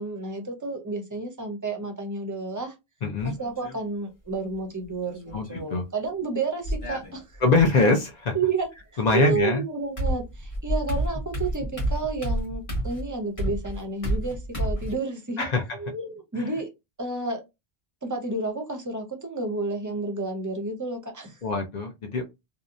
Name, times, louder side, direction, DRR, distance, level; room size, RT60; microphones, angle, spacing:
voice 1, 0.0-2.7 3.2-7.4 8.3-15.5 15.8-16.7 17.0-17.4 18.0-21.4, right 3 dB, 25° right, 0.5 m, -31 dB
voice 2, 3.0-3.3 5.3-5.8 7.4-8.4 9.0-9.6 15.4-15.6 21.4-22.2, left 3 dB, 50° left, 0.6 m, -23 dB
sound 1, 3.2-3.8 5.1-5.7 6.6-7.7 9.4-9.5 10.0-15.0, right 1 dB, 35° left, 1.0 m, -30 dB
2.7 x 2.1 x 2.4 m
omnidirectional pair, 1.0 m